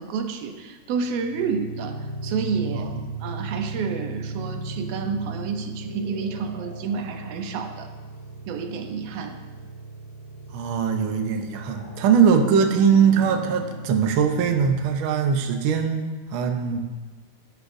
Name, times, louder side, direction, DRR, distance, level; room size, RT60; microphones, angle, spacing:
voice 1, 0.0-2.9 3.2-7.9 8.5-9.4, right 5 dB, 70° right, 5 dB, 1.7 m, -29 dB
sound 1, 0.8-15.4, right 2 dB, 50° left, 2.6 m, -37 dB
voice 2, 10.5-16.8, right 6 dB, 90° right, 4 dB, 1.1 m, -21 dB
13.0 x 10.0 x 2.6 m, 1.3 s
omnidirectional pair, 3.3 m